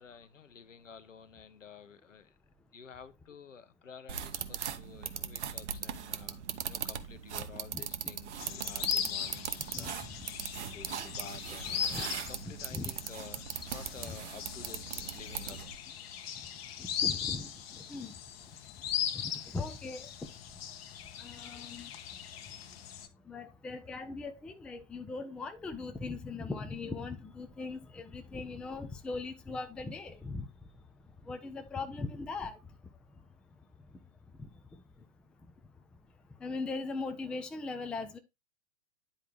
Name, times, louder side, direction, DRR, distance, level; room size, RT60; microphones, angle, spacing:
voice 1, 0.0-2.4 2.7-10.3 10.6-15.8, left 6 dB, 80° left, 1.0 m, -51 dB
sound 1, 4.1-15.8, right 8 dB, 65° right, 0.9 m, -39 dB
sound 2, 8.4-23.1, left 9 dB, 55° left, 1.1 m, -39 dB
voice 2, 11.7-12.0 12.7-12.9 16.8-17.5 17.8-18.1 19.1-20.1 21.2-21.9 23.3-30.5 31.3-32.6 36.4-38.2, left 3 dB, 5° left, 0.4 m, -39 dB
10.0 x 4.5 x 3.3 m
figure-of-eight pair, 105°, 37 cm